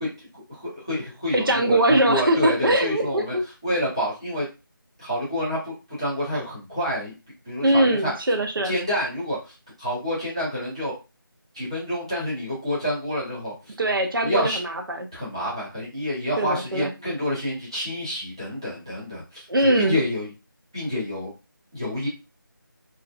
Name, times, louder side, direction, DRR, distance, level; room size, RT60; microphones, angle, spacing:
voice 1, 0.0-3.4 3.6-4.5 5.0-7.2 7.5-8.1 8.6-10.9 11.5-13.7 14.2-14.6 15.1-20.3 20.7-21.3 21.7-22.1, equal, 15° right, -9 dB, 0.6 m, -28 dB
voice 2, 1.3-3.4 7.6-8.7 13.8-15.1 16.4-16.9 19.5-20.0, right 1 dB, 70° right, 2 dB, 0.6 m, -21 dB
2.5 x 2.0 x 2.4 m, 0.28 s
figure-of-eight pair, 175°, 12 cm